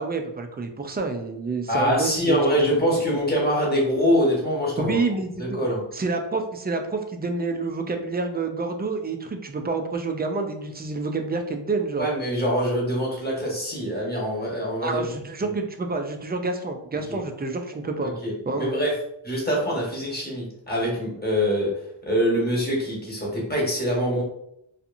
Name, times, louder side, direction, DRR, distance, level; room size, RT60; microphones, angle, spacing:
voice 1, 0.0-2.4 4.8-5.7 5.9-12.1 14.8-18.1 18.5-18.8, right 3 dB, 25° right, 5 dB, 0.3 m, -28 dB
voice 2, 1.7-5.0 5.4-5.8 12.0-15.1 15.4-15.5 17.1-17.2 18.0-18.3 18.6-18.9 19.2-21.7 22.1-24.2, equal, 20° left, -4 dB, 1.2 m, -24 dB
2.8 x 2.4 x 2.5 m, 0.77 s
wide cardioid pair, 65°, 49 cm